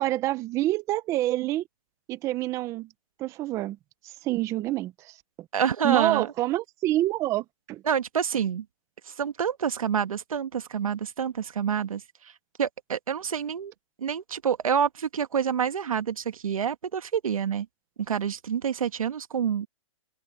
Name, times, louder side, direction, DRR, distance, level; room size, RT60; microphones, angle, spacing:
voice 1, 0.0-1.6 2.1-2.9 3.2-3.8 4.2-5.2 5.8-7.8, right 15 dB, 15° right, 0.7 m, -27 dB
voice 2, 5.5-6.3 7.9-8.7 9.1-12.0 12.6-13.7 14.0-17.7 18.1-19.7, right 7 dB, 85° right, 1.8 m, -27 dB
hypercardioid pair, 160°, 17 cm